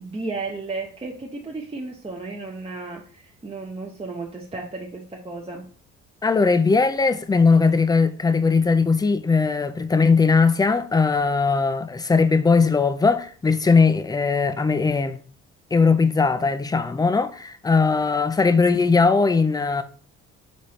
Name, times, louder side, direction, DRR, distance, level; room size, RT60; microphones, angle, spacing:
voice 1, 0.0-5.7, right 3 dB, 20° right, 0.7 m, -34 dB
voice 2, 6.2-15.2 15.7-19.8, left 4 dB, 15° left, 0.4 m, -19 dB
4.1 x 3.6 x 3.4 m
cardioid pair, 90°, 30 cm